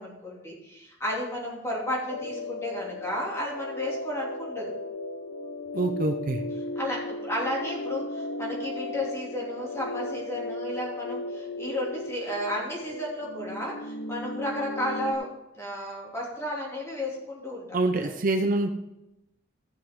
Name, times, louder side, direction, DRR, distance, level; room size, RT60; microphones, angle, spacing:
voice 1, 0.0-4.7 6.7-15.3 15.5-18.1, left 1 dB, 15° left, -4 dB, 2.7 m, -33 dB
sound 1, 2.1-15.1, left 2 dB, 90° left, 0.8 m, -36 dB
voice 2, 5.7-6.4 17.7-18.7, right 2 dB, 45° right, 6 dB, 0.6 m, -25 dB
14.0 x 6.1 x 3.7 m, 0.91 s
head